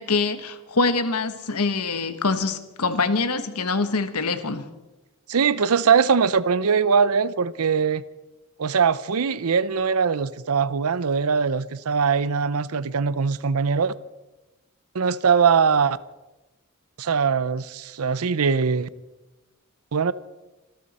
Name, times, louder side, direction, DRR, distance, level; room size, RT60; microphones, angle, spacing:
voice 1, 0.0-4.7, left 3 dB, 90° left, 1.3 m, -24 dB
voice 2, 5.3-8.0 8.6-13.9 14.9-16.0 17.0-18.9 19.9-20.1, right 6 dB, 75° right, 0.6 m, -21 dB
26.5 x 13.0 x 4.2 m
head